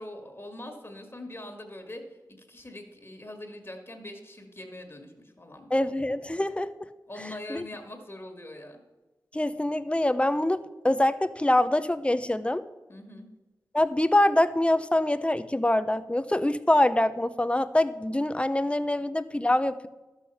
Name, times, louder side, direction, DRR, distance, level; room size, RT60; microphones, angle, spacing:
voice 1, 0.0-2.0 2.3-5.8 7.1-8.8 12.9-13.3, left 1 dB, 35° left, 4 dB, 1.9 m, -42 dB
voice 2, 5.7-6.9 7.5-7.7 9.3-12.6 13.7-19.9, left 1 dB, 15° left, 13 dB, 0.6 m, -25 dB
12.5 x 6.5 x 5.6 m, 1.1 s
cardioid pair, 50°, 7 cm